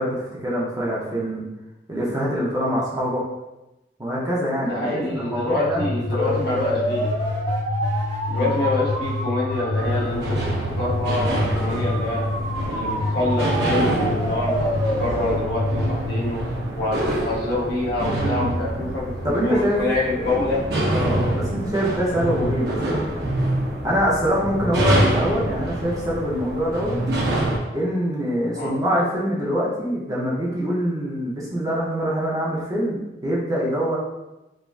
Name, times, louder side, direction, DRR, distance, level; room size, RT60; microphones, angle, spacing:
voice 1, 0.0-1.4 1.9-3.2 4.0-6.0 6.4-6.9 8.4-8.5 18.2-18.9 19.2-19.8 20.1-20.3 20.9-23.3 23.8-27.0 27.7-34.0, equal, 20° right, -6 dB, 0.5 m, -25 dB
voice 2, 4.6-7.1 8.3-10.3 10.8-12.2 12.7-14.7 15.0-16.4 16.7-20.6 28.5-28.7, left 2 dB, 60° left, -5 dB, 0.8 m, -26 dB
sound 1, 5.2-17.0, left 1 dB, 30° left, 0.6 m, -26 dB
sound 2, 9.8-27.6, right 1 dB, 65° right, 0.6 m, -26 dB
3.0 x 2.3 x 2.3 m, 1.0 s
head